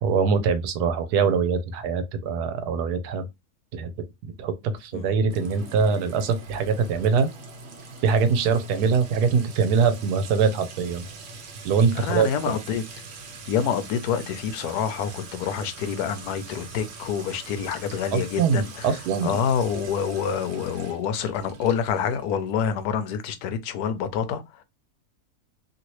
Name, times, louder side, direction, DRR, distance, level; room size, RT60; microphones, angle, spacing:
voice 1, 0.0-3.2 3.7-3.9 4.2-7.3 8.0-11.0 11.6-12.6 18.1-19.3, right 5 dB, 90° right, 1.2 m, -23 dB
Sink (filling or washing) / Trickle dribble / Fill (with liquid), 5.3-22.7, right 4 dB, 55° right, 0.9 m, -43 dB
voice 2, 11.9-12.8 13.5-24.6, left 7 dB, 80° left, 1.1 m, -27 dB
2.9 x 2.9 x 3.0 m
omnidirectional pair, 1.6 m